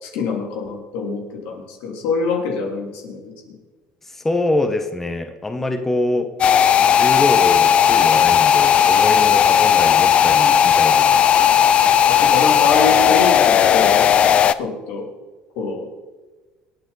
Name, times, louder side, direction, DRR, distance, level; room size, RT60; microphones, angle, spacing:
voice 1, 0.0-3.3 12.1-15.1 15.5-15.9, left 4 dB, 80° left, 1 dB, 3.3 m, -25 dB
voice 2, 4.1-6.3 6.8-11.1, left 2 dB, 10° left, 6 dB, 1.2 m, -24 dB
sound 1, 6.4-14.5, left 8 dB, 40° left, 0.5 m, -15 dB
26.5 x 9.1 x 4.1 m, 1.3 s
cardioid pair, 125°, 3 cm